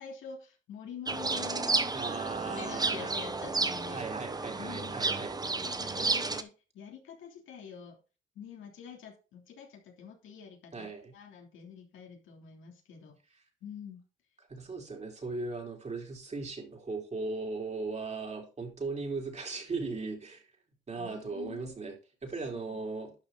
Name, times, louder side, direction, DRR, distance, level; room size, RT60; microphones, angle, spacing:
voice 1, 0.0-2.2 2.4-4.0 4.6-8.0 8.3-13.2 13.6-14.0 21.0-21.7 22.5-22.8, left 7 dB, 80° left, 2 dB, 3.1 m, -47 dB
sound 1, 1.1-6.4, right 3 dB, 20° right, 1.0 m, -32 dB
voice 2, 1.9-3.1 3.9-5.7 6.0-6.1 10.7-11.1 14.5-20.4 20.9-22.0 22.2-23.1, right 3 dB, 35° right, 1 dB, 3.7 m, -38 dB
11.5 x 6.3 x 3.9 m, 0.33 s
cardioid pair, 90°, 20 cm